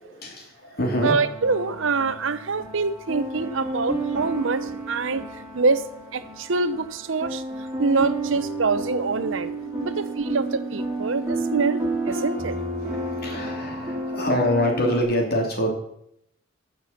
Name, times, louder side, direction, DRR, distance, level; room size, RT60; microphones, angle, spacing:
voice 1, 0.0-1.2 9.6-10.6 11.1-11.2 12.9-15.7, equal, 50° left, 1 dB, 2.9 m, -26 dB
sound 1, 0.9-15.0, right 2 dB, 10° right, 2.7 m, -31 dB
voice 2, 1.0-5.2 5.5-5.8 6.1-7.4 7.8-9.5 9.8-11.8 12.1-12.5, right 4 dB, 70° right, 13 dB, 0.8 m, -25 dB
14.0 x 6.9 x 5.8 m, 0.74 s
head